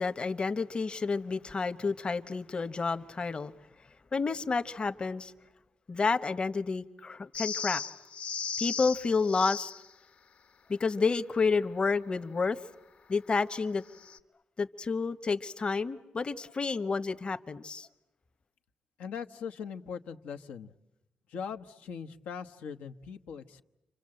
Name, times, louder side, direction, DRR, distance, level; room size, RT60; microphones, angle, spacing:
voice 1, 0.0-3.5 4.1-5.3 5.9-7.8 8.6-9.7 10.7-12.6 13.1-13.8 14.6-17.9, left 4 dB, 40° left, 10 dB, 1.2 m, -30 dB
sound 1, 7.3-9.9 13.9-14.2, left 6 dB, 65° left, 1.6 m, -36 dB
voice 2, 19.0-20.7 21.3-23.6, left 6 dB, 85° left, 7 dB, 1.1 m, -40 dB
29.5 x 25.0 x 7.8 m, 0.96 s
cardioid pair, 60°, 3 cm